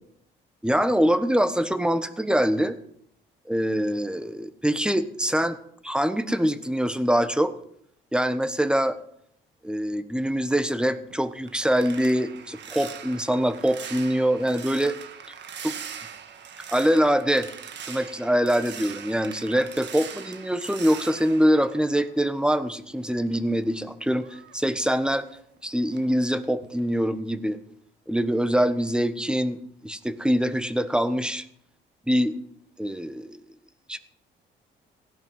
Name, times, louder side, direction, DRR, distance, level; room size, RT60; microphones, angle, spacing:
voice 1, 0.6-2.8 3.5-5.6 5.8-7.5 8.1-9.0 9.6-15.0 15.6-15.8 16.7-17.5 17.9-25.3 25.6-27.6 28.1-31.4 32.1-32.4 32.8-33.4 33.9-34.0, equal, 5° right, 11 dB, 1.2 m, -24 dB
sound 1, 11.1-22.6 22.9-25.6 25.9-26.2 26.6-26.9, right 8 dB, 65° right, 1.5 m, -42 dB
17.0 x 11.0 x 5.6 m, 0.70 s
cardioid pair, 90°, 20 cm